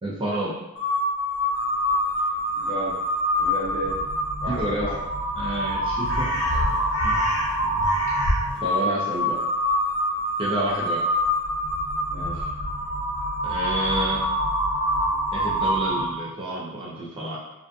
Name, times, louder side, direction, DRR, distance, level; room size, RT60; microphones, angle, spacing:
voice 1, 0.0-0.5 4.5-4.9 5.4-6.3 7.0-7.3 8.6-9.4 10.4-11.0 13.4-14.2 15.3-17.4, right 1 dB, 25° right, -6 dB, 0.4 m, -29 dB
Crow, 0.8-16.3, equal, 80° left, 0.8 m, -25 dB
voice 2, 2.5-3.0 3.4-4.0 4.4-5.0 10.6-10.8 12.1-12.5, equal, 90° right, -9 dB, 1.3 m, -33 dB
2.5 x 2.4 x 2.2 m, 0.98 s
head